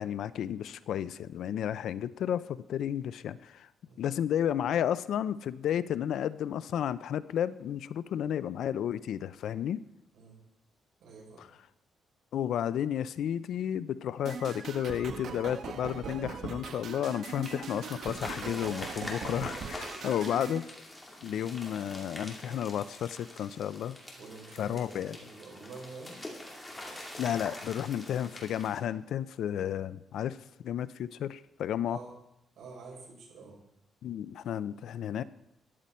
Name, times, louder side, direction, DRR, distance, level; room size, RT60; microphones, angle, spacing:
voice 1, 0.0-3.7 4.0-9.8 11.4-11.5 12.3-20.6 21.2-24.0 24.6-25.2 27.2-32.0 34.0-35.2, left 10 dB, 65° left, 15 dB, 0.5 m, -32 dB
voice 2, 11.0-11.4 20.0-20.1 21.2-21.4 24.2-26.2 31.9-32.1 32.6-33.6, right 4 dB, 70° right, -2 dB, 5.6 m, -48 dB
sound 1, 14.3-20.6, right 6 dB, 55° right, 1.2 m, -40 dB
sound 2, 17.3-28.8, left 1 dB, 10° left, 2.6 m, -45 dB
13.5 x 10.5 x 4.3 m, 0.87 s
cardioid pair, 150°, 0 cm